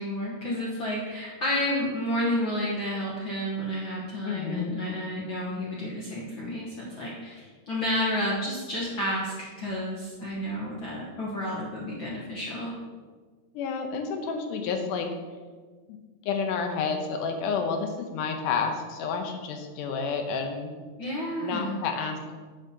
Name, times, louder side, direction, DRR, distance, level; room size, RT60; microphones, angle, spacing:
voice 1, 0.0-12.8 21.0-21.8, left 1 dB, 65° left, -5 dB, 1.2 m, -31 dB
voice 2, 4.2-4.7 13.5-15.1 15.9-16.0 16.3-20.7 21.4-22.4, left 5 dB, 80° left, 4 dB, 2.3 m, -30 dB
11.0 x 7.2 x 2.8 m, 1.5 s
omnidirectional pair, 3.8 m